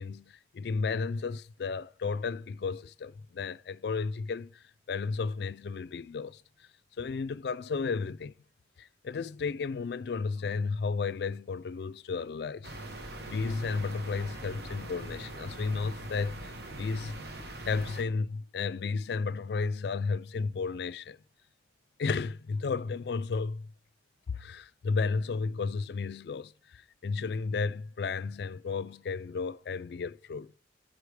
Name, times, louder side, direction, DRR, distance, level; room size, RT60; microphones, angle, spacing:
voice 1, 0.0-6.4 7.0-8.3 8.8-12.7 13.3-21.2 22.0-23.7 24.3-30.5, left 4 dB, 60° left, 0.4 m, -33 dB
sound 1, 12.6-18.0, right 1 dB, 60° right, 1.2 m, -42 dB
8.5 x 4.8 x 5.0 m
head